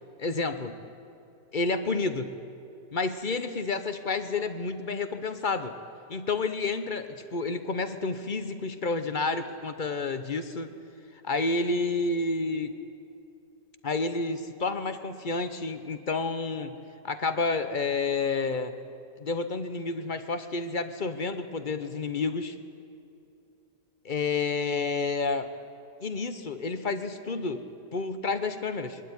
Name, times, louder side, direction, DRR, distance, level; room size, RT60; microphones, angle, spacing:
voice 1, 0.2-0.8 1.5-2.4 2.9-5.7 6.1-10.7 11.2-12.7 13.8-16.8 17.0-18.7 19.2-22.5 24.0-25.5 26.0-27.7 27.9-29.0, left 3 dB, 40° left, 10 dB, 0.8 m, -30 dB
22.0 x 12.5 x 9.7 m, 2.7 s
omnidirectional pair, 1.9 m